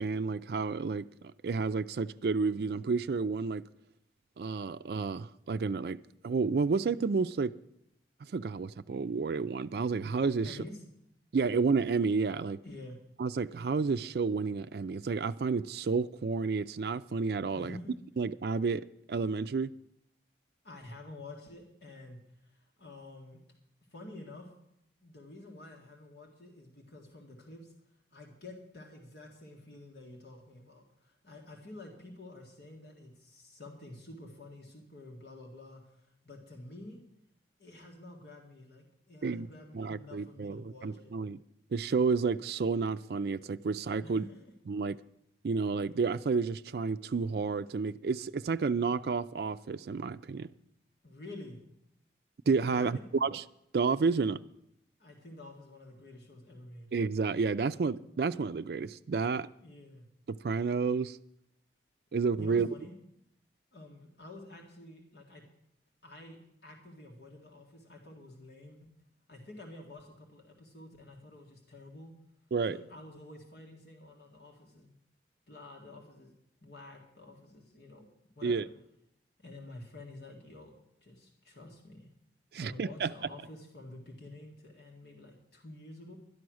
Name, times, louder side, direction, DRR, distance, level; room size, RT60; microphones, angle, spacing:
voice 1, 0.0-3.6 4.4-6.0 6.2-7.5 8.2-10.6 11.3-12.6 13.2-17.8 18.2-19.7 39.2-39.5 39.7-41.4 41.7-44.2 44.7-45.0 45.4-50.5 52.5-53.4 53.7-54.4 56.9-59.5 60.3-61.2 62.1-62.7 72.5-72.8 78.4-78.7 82.5-83.1, right 4 dB, 60° right, 0.4 m, -30 dB
voice 2, 10.4-10.8 12.6-13.0 17.5-17.9 20.6-23.4 23.9-24.5 25.0-27.7 28.1-37.0 37.6-41.1 44.0-44.5 51.0-51.6 52.7-53.0 55.0-56.9 59.6-60.1 62.3-62.9 63.7-65.4 66.0-68.9 69.3-72.1 72.7-74.9 75.5-76.3 76.6-78.0 78.4-78.7 79.4-82.1 82.5-86.2, left 2 dB, 70° left, 1.9 m, -49 dB
12.0 x 10.5 x 6.3 m
head